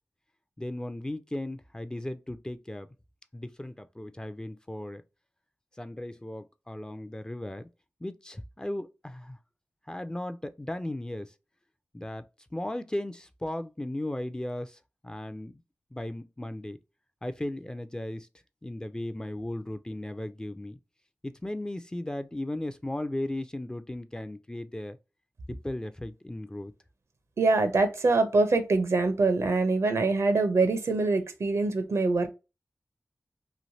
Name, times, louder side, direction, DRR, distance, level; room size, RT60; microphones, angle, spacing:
voice 1, 0.6-2.9 3.3-5.0 5.8-7.7 8.0-9.4 9.9-11.3 11.9-12.2 12.5-15.6 15.9-16.8 17.2-18.3 18.6-20.8 21.2-25.0 25.5-26.7, left 1 dB, 15° left, 0.3 m, -36 dB
voice 2, 27.4-32.3, right 3 dB, 75° right, 0.6 m, -24 dB
3.1 x 2.5 x 2.7 m
cardioid pair, 50°, 5 cm